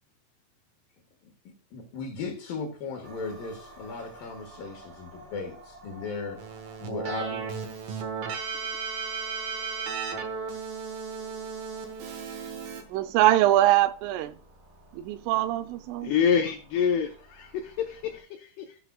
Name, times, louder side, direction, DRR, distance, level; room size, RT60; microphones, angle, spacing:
voice 1, 1.4-6.4 6.8-7.4, left 4 dB, 60° left, 2.6 m, -37 dB
sound 1, 3.0-18.2, right 1 dB, 25° right, 1.5 m, -53 dB
Keyboard (musical), 6.4-12.8, right 5 dB, 70° right, 2.2 m, -35 dB
voice 2, 12.9-14.4 14.9-16.1, right 14 dB, 90° right, 3.2 m, -23 dB
voice 3, 16.0-18.8, left 7 dB, 85° left, 2.3 m, -27 dB
16.0 x 5.9 x 2.2 m
omnidirectional pair, 5.6 m